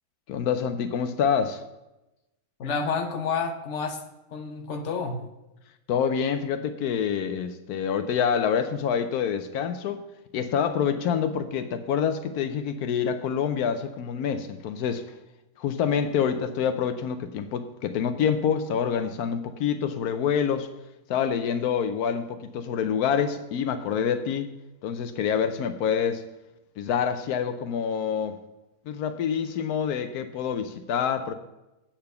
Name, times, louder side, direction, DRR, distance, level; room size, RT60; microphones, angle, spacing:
voice 1, 0.3-1.6 5.9-10.0 10.3-15.0 15.6-20.7 21.1-24.5 24.8-26.2 26.8-28.3 28.9-31.3, left 7 dB, 85° left, 9 dB, 1.1 m, -26 dB
voice 2, 2.6-4.0 4.3-5.2, left 5 dB, 55° left, 4 dB, 1.3 m, -29 dB
8.6 x 5.8 x 6.7 m, 0.97 s
omnidirectional pair, 1.6 m